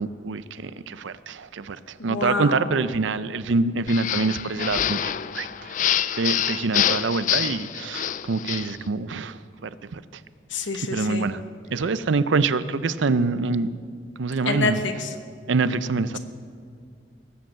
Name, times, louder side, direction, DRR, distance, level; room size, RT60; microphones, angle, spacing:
voice 1, 0.0-5.9 6.2-10.2 10.9-11.4 11.7-13.7 14.2-14.8 15.5-16.2, right 4 dB, 75° right, 14 dB, 0.5 m, -25 dB
voice 2, 2.1-2.7 10.5-11.3 14.5-15.1, left 3 dB, 75° left, 7 dB, 1.1 m, -27 dB
sound 1, 3.9-8.8, left 10 dB, 40° left, 0.3 m, -26 dB
18.5 x 7.8 x 7.4 m, 2.3 s
head